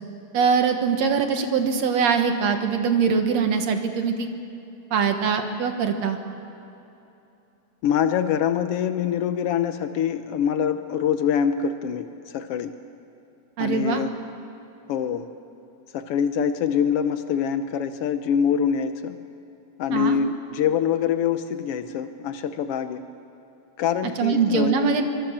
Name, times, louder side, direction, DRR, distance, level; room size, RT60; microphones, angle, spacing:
voice 1, 0.3-4.3 4.9-6.2 13.6-14.0 19.9-20.2 24.2-25.0, right 6 dB, 60° right, 6 dB, 2.4 m, -22 dB
voice 2, 7.8-12.7 13.6-14.1 14.9-15.3 15.9-19.2 19.8-23.0 23.8-24.7, left 8 dB, 85° left, 9 dB, 1.3 m, -24 dB
24.0 x 24.0 x 7.3 m, 2.9 s
omnidirectional pair, 3.7 m